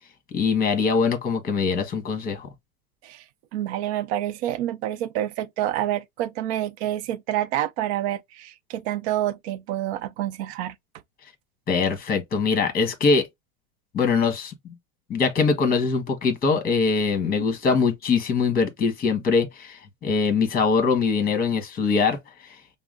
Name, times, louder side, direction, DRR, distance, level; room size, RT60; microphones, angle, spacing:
voice 1, 0.3-2.5 11.7-13.3 13.9-14.5 15.1-19.8 20.0-22.2, left 5 dB, 25° left, 1.4 m, -22 dB
voice 2, 3.5-10.7, right 12 dB, 55° right, 0.6 m, -28 dB
5.7 x 2.1 x 3.7 m
supercardioid pair, 140°, 39 cm